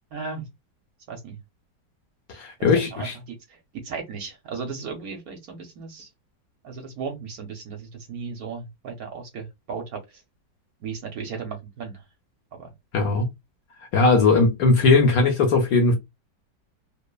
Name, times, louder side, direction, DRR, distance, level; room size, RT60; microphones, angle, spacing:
voice 1, 0.1-0.5 1.1-1.4 2.9-3.6 3.8-6.1 6.6-10.0 10.8-11.9 12.5-12.7, right 5 dB, 65° right, 1.0 m, -35 dB
voice 2, 2.3-3.2 12.9-13.3 13.9-15.9, left 3 dB, 65° left, 1.0 m, -19 dB
3.0 x 2.0 x 2.2 m
omnidirectional pair, 1.9 m